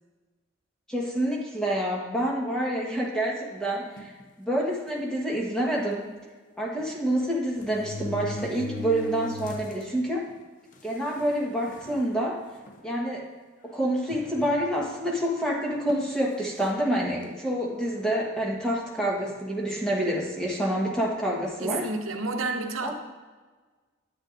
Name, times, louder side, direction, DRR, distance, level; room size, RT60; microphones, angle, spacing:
voice 1, 0.9-4.1 4.4-6.1 6.6-10.3 10.8-12.4 12.8-13.3 13.6-21.9 22.8-22.9, right 1 dB, 5° left, -3 dB, 1.2 m, -27 dB
sound 1, 4.0-4.2 5.0-5.1 5.4-5.5 6.8-6.9 7.6-9.8 10.3-10.4 11.2-11.3 11.7-12.0 12.7-12.8 14.1-14.9 15.9-16.1, left 3 dB, 40° left, 0.5 m, -38 dB
voice 2, 21.6-22.9, right 3 dB, 90° right, 5 dB, 0.8 m, -30 dB
10.0 x 8.7 x 2.5 m, 1.4 s
head